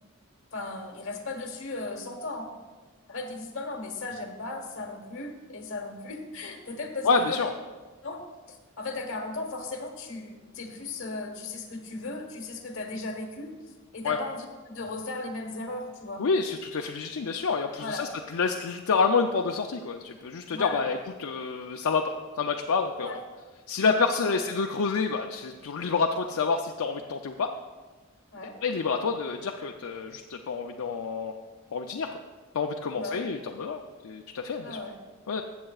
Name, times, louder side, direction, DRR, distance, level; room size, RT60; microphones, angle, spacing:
voice 1, 0.5-2.5 3.1-7.4 8.0-13.5 13.9-16.2 17.8-18.1 20.5-20.8 23.0-23.2 24.1-24.4 28.3-28.5 32.9-33.2 34.6-35.0, left 2 dB, 60° left, 4 dB, 1.2 m, -36 dB
voice 2, 7.0-7.5 14.0-14.2 16.2-23.1 23.7-27.5 28.6-31.4 31.7-32.1 32.5-34.8 35.3-35.4, left 4 dB, 75° left, 3 dB, 0.5 m, -28 dB
15.0 x 7.6 x 2.4 m, 1.3 s
head